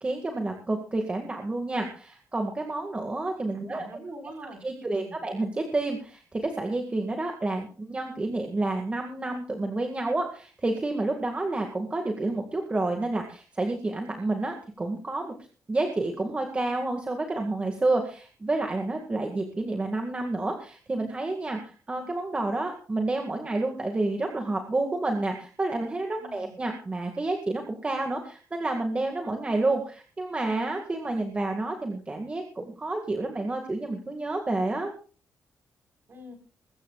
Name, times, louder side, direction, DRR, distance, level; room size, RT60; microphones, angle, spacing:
voice 1, 0.0-3.8 4.6-15.3 15.7-34.9, right 2 dB, 20° right, 3 dB, 2.0 m, -29 dB
voice 2, 3.5-5.2 26.2-26.6 36.1-36.3, right 1 dB, 40° right, 5 dB, 4.9 m, -43 dB
22.0 x 14.0 x 2.4 m, 0.38 s
cardioid pair, 135°, 6 cm